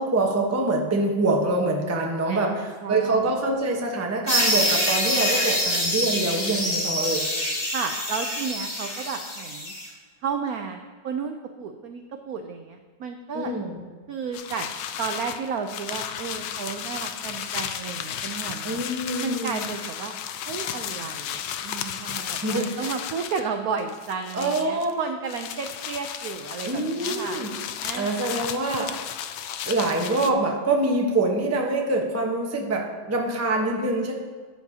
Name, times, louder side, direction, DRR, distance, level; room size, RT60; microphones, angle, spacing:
voice 1, 0.0-2.5 2.9-7.2 13.3-13.8 18.6-19.6 22.4-22.9 24.3-24.9 26.6-27.5 27.9-28.9 29.6-34.1, right 2 dB, 15° right, 0 dB, 0.6 m, -25 dB
voice 2, 2.3-3.4 7.7-9.7 10.2-13.5 14.1-14.7 15.0-18.8 19.2-20.2 20.5-27.4 27.8-28.2, right 6 dB, 70° right, 5 dB, 0.8 m, -33 dB
sound 1, 4.3-9.9, left 1 dB, 25° left, 1.7 m, -25 dB
sound 2, 14.3-23.5 23.8-24.9 25.3-30.3, left 9 dB, 75° left, 1.2 m, -34 dB
11.5 x 9.2 x 2.8 m, 1.5 s
omnidirectional pair, 2.1 m